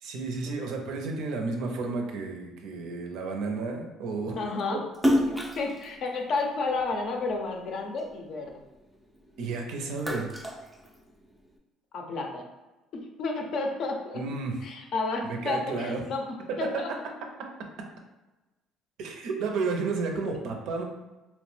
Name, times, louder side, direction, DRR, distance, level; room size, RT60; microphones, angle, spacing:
voice 1, 0.0-4.3 4.7-4.8 9.4-10.3 14.1-14.6 15.2-16.0 16.5-17.0 19.0-20.8, right 4 dB, 75° right, 3 dB, 0.5 m, -32 dB
voice 2, 4.4-4.8 5.6-8.5 11.9-12.5 12.9-14.2 14.6-16.9, left 3 dB, 55° left, 2 dB, 0.5 m, -31 dB
Splash splatter, 4.9-7.5 8.0-9.4 9.8-11.5, equal, 5° right, 0.3 m, -29 dB
2.8 x 2.1 x 3.2 m, 1.1 s
cardioid pair, 105°, 0 cm